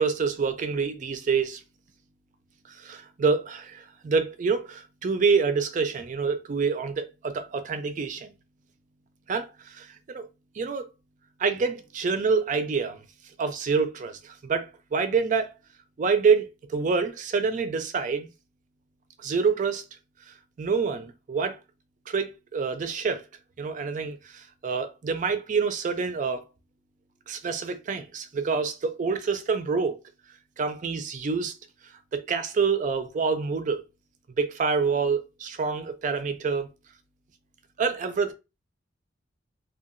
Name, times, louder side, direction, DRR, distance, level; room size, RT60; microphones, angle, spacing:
voice 1, 0.0-1.6 2.7-8.3 9.3-10.3 10.6-10.8 11.4-13.0 13.4-15.5 16.0-18.3 19.2-19.8 20.3-21.6 22.1-23.2 23.6-26.4 27.3-30.0 30.6-31.5 31.8-33.8 34.4-36.7 37.8-38.3, right 5 dB, 40° right, 0.3 m, -27 dB
2.7 x 2.2 x 2.4 m
head